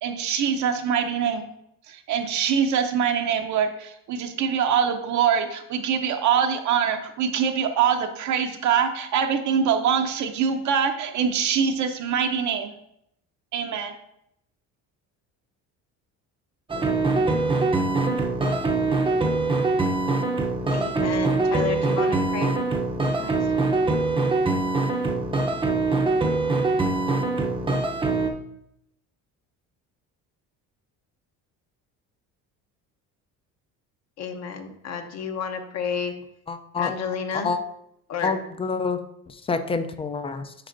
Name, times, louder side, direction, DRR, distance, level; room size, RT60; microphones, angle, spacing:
voice 1, 0.0-1.4 1.9-12.7 13.5-13.9, right 7 dB, 60° right, 5 dB, 0.7 m, -24 dB
sound 1, 16.7-28.3, right 3 dB, 15° right, 0.6 m, -23 dB
voice 2, 20.7-22.5 23.2-23.5 34.2-36.1 36.8-37.5 38.1-38.4, left 6 dB, 50° left, 6 dB, 0.8 m, -31 dB
voice 3, 36.5-36.9 37.3-37.6 38.2-40.5, left 4 dB, 20° left, 10 dB, 0.3 m, -28 dB
8.7 x 5.1 x 2.5 m, 0.77 s
cardioid pair, 135°, 34 cm